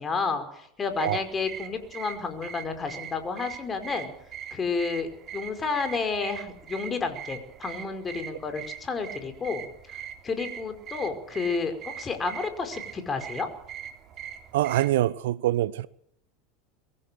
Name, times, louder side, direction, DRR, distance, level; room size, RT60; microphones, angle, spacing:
voice 1, 0.0-4.1 4.5-9.6 10.2-13.5, left 4 dB, 25° left, 5.3 m, -31 dB
sound 1, 0.9-15.0, right 9 dB, 40° right, 3.4 m, -42 dB
voice 2, 14.5-15.9, right 14 dB, 70° right, 0.7 m, -24 dB
23.0 x 15.5 x 7.9 m
hypercardioid pair, 85°, 0 cm